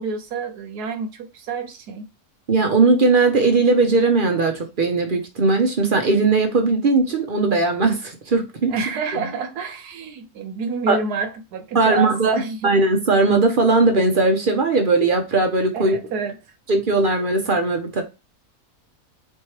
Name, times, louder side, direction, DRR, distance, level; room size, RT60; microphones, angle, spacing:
voice 1, 0.0-2.1 8.7-12.7 15.7-16.4, right 4 dB, 90° right, 1.3 m, -28 dB
voice 2, 2.5-8.7 10.9-11.0 11.7-16.0 16.7-18.0, right 3 dB, 45° right, 0.7 m, -18 dB
4.3 x 3.2 x 3.1 m
omnidirectional pair, 1.6 m